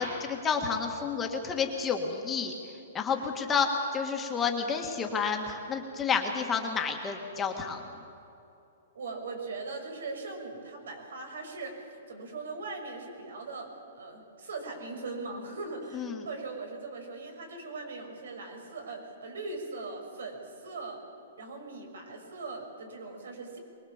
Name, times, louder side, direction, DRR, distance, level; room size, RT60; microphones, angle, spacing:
voice 1, 0.0-2.5 2.9-3.7 3.9-7.8 15.9-16.2, left 6 dB, 10° left, 2 dB, 1.6 m, -30 dB
voice 2, 8.9-21.0 21.4-23.6, right 3 dB, 85° right, 4 dB, 5.9 m, -40 dB
23.5 x 21.5 x 7.2 m, 2.8 s
hypercardioid pair, 170°, 0 cm